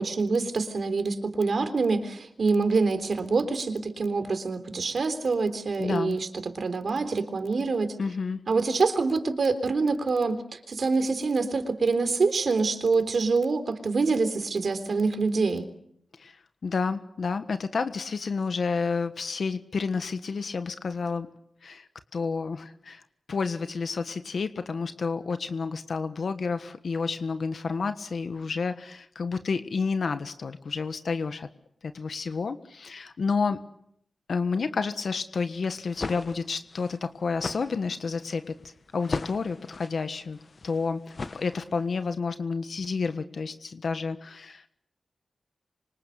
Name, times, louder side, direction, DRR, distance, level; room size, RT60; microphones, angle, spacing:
voice 1, 0.0-6.3 6.6-7.9 8.5-15.7, right 4 dB, 60° right, 9 dB, 3.6 m, -26 dB
voice 2, 5.8-6.2 8.0-8.4 16.2-21.3 21.6-23.0 23.3-31.5 31.8-33.6 34.3-38.5 38.9-40.4 40.6-44.7, left 4 dB, 65° left, 9 dB, 1.4 m, -30 dB
sound 1, 35.8-42.0, left 3 dB, 45° left, 1.2 m, -38 dB
27.0 x 25.0 x 8.3 m, 0.73 s
wide cardioid pair, 80°, 0 cm